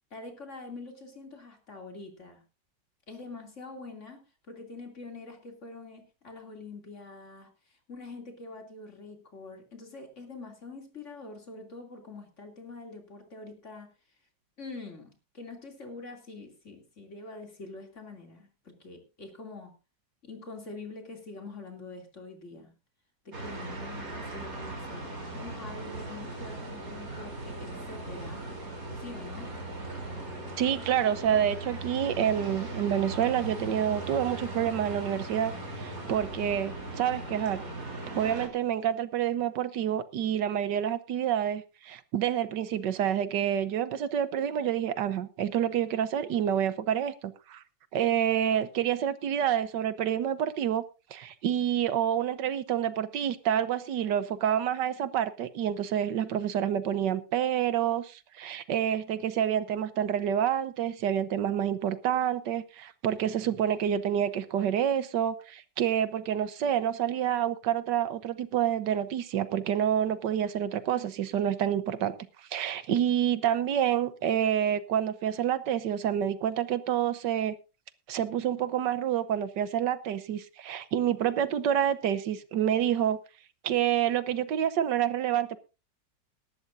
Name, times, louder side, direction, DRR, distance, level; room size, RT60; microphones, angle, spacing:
voice 1, 0.1-2.4 3.1-13.9 14.6-19.7 20.2-22.7 23.2-25.0 25.3-28.4 29.0-29.5, left 3 dB, 45° left, 3.1 m, -45 dB
sound 1, 23.3-38.5, right 2 dB, 55° right, 4.0 m, -38 dB
voice 2, 30.6-37.6 38.1-47.6 47.9-50.8 51.1-72.1 72.5-77.5 78.1-83.2 83.6-85.6, right 9 dB, 90° right, 1.5 m, -28 dB
19.0 x 12.5 x 2.6 m
omnidirectional pair, 1.8 m